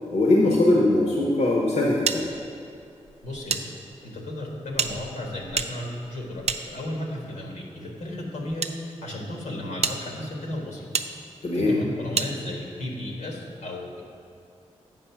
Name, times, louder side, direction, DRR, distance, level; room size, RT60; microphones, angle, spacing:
voice 1, 0.1-2.2 11.4-11.8, left 2 dB, 65° left, -2 dB, 1.0 m, -21 dB
sound 1, 2.1-3.6 3.9-4.0 4.7-7.2 8.0-8.7 9.3-9.4 9.8-10.0 10.9-11.1 12.1-12.3, right 5 dB, 60° right, 0.5 m, -29 dB
voice 2, 3.2-3.7 4.0-8.7 9.0-10.9 11.5-14.0, left 1 dB, 85° left, -1 dB, 1.4 m, -34 dB
7.6 x 5.5 x 5.7 m, 2.6 s
cardioid pair, 45°, 12 cm